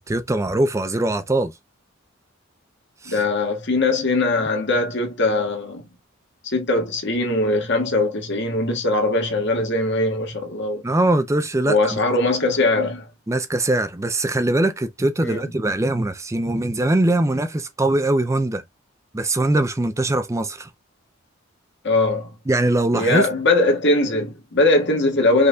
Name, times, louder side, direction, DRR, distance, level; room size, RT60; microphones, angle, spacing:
voice 1, 0.1-1.5 3.0-3.2 10.8-12.0 13.3-18.6 19.1-20.7 22.5-23.3, right 2 dB, 15° right, 0.4 m, -21 dB
voice 2, 3.1-5.8 6.5-10.8 11.6-13.1 15.2-15.5 21.8-22.3 22.9-25.5, left 2 dB, 60° left, 1.6 m, -21 dB
5.3 x 4.0 x 2.2 m
head